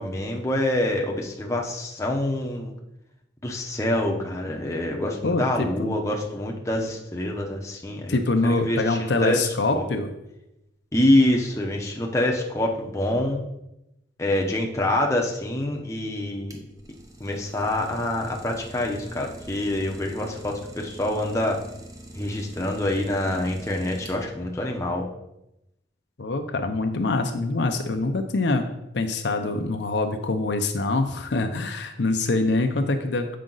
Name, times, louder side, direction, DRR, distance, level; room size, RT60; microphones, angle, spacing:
voice 1, 0.0-2.7 3.4-9.5 9.7-9.8 10.9-13.4 14.2-16.6 17.2-21.6 22.1-25.1, left 1 dB, 15° left, 0 dB, 0.8 m, -26 dB
voice 2, 5.2-6.0 8.1-10.1 26.2-28.7 28.9-33.4, left 2 dB, 65° left, 6 dB, 0.6 m, -24 dB
Idling, 16.2-24.5, equal, 20° right, 0.7 m, -44 dB
7.5 x 5.0 x 3.9 m, 0.88 s
head